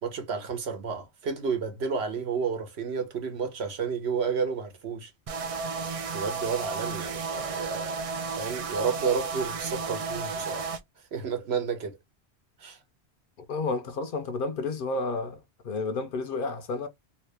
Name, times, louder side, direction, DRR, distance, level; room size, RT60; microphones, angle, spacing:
voice 1, 0.0-5.1 6.1-8.0 8.4-10.7 11.1-12.0 12.6-12.8, right 5 dB, 75° right, 1.1 m, -31 dB
sound 1, 5.3-10.8, right 4 dB, 50° right, 0.4 m, -33 dB
voice 2, 13.5-15.4 15.6-16.9, left 3 dB, 60° left, 0.7 m, -31 dB
2.9 x 2.8 x 3.2 m
omnidirectional pair, 1.1 m